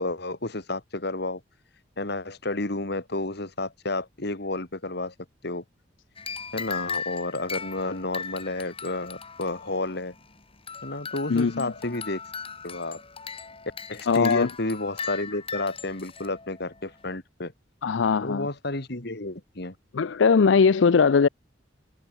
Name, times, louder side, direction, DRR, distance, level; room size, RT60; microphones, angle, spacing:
voice 1, 0.0-1.4 2.0-5.1 5.4-5.6 6.5-10.1 10.8-12.2 12.6-13.0 13.9-17.5 18.2-19.7, left 2 dB, 60° left, 2.9 m, -31 dB
sound 1, 6.2-17.2, left 5 dB, 30° left, 3.6 m, -38 dB
voice 2, 11.3-11.7 14.1-14.5 17.8-18.5 19.9-21.3, left 5 dB, 85° left, 0.5 m, -20 dB
head